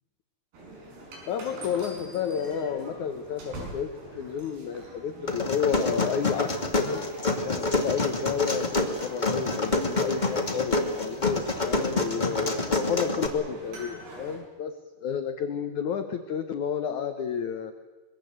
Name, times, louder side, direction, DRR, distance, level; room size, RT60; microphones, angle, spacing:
sound 1, 0.5-14.4, right 2 dB, 65° right, 7.4 m, -45 dB
voice 1, 1.3-7.0 7.4-17.7, left 7 dB, 80° left, 8 dB, 1.7 m, -31 dB
sound 2, 5.3-13.3, left 2 dB, 25° left, 0.9 m, -27 dB
25.0 x 23.0 x 8.0 m, 1.3 s
omnidirectional pair, 5.2 m